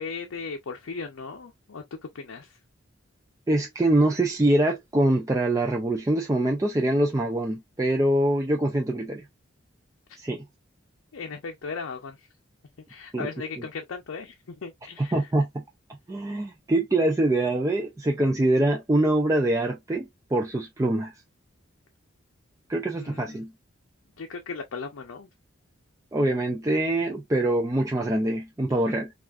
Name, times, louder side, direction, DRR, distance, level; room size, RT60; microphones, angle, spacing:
voice 1, 0.0-1.8 2.1-2.6 11.1-12.3 12.9-14.4 14.6-15.2 23.0-23.4 24.2-25.3, left 5 dB, 80° left, 0.5 m, -37 dB
voice 2, 3.5-9.2 10.2-10.4 13.1-13.3 15.0-15.6 16.1-21.1 22.7-23.5 26.1-29.1, right 1 dB, 15° right, 0.3 m, -24 dB
3.4 x 2.4 x 2.3 m
head